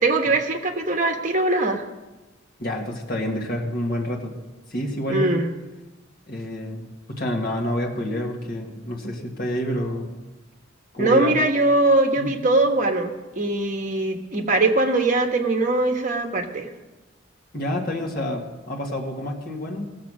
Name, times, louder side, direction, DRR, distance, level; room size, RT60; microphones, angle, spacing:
voice 1, 0.0-1.8 5.1-5.5 11.0-16.7, right 2 dB, 40° right, 4 dB, 1.3 m, -21 dB
voice 2, 2.6-4.3 4.7-5.4 6.3-10.1 10.9-11.4 12.2-12.3 17.5-19.9, equal, 50° left, 0 dB, 1.7 m, -28 dB
16.5 x 7.3 x 6.2 m, 1.1 s
head